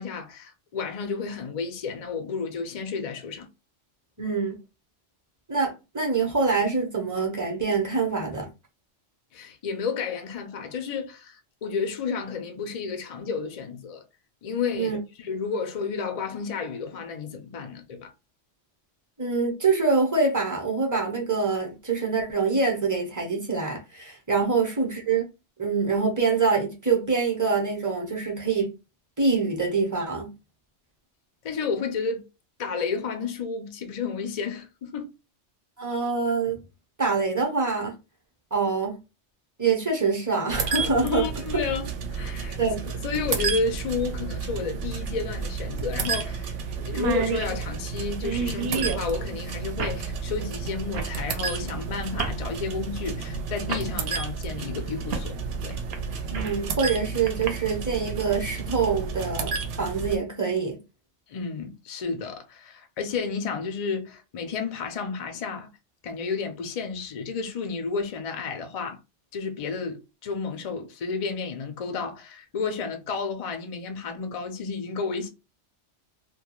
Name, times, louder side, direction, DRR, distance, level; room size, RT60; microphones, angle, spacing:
voice 1, 0.0-3.5 9.3-14.0 14.4-14.9 15.2-18.1 24.4-24.5 31.4-32.2 32.6-35.1 41.0-42.6 43.0-55.4 55.6-55.8 61.3-65.7 66.0-69.0 69.3-75.3, left 5 dB, 65° left, 0.3 m, -31 dB
voice 2, 4.2-4.5 5.5-8.5 14.7-15.0 19.2-25.2 25.6-28.7 29.2-30.3 35.8-36.6 37.0-37.9 38.5-39.0 39.6-41.2 42.6-42.8 56.3-60.8, right 4 dB, 20° right, 0.5 m, -25 dB
sound 1, 40.5-60.2, right 5 dB, 90° right, 0.9 m, -32 dB
sound 2, 43.1-43.2 45.0-45.1 45.5-45.6 46.1-46.3 46.6-46.7 46.9-49.1 49.8-50.0 50.9-51.2 52.1-52.4 53.2-53.3 53.7-53.9 55.1-55.3 55.7-56.6 57.3-57.5, right 6 dB, 65° right, 0.8 m, -30 dB
2.2 x 2.2 x 2.9 m
omnidirectional pair, 1.2 m